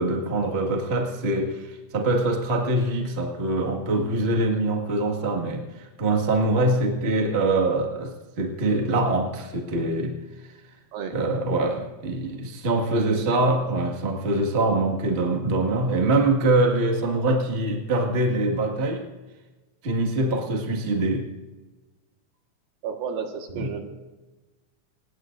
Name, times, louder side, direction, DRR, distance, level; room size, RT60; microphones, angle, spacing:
voice 1, 0.0-10.2 11.1-19.0 19.8-21.3 23.6-23.7, right 2 dB, 30° right, 1 dB, 1.2 m, -24 dB
voice 2, 12.9-13.5 20.3-20.4 22.8-23.8, right 6 dB, 75° right, 3 dB, 3.4 m, -32 dB
27.5 x 18.0 x 2.6 m, 1.2 s
omnidirectional pair, 4.2 m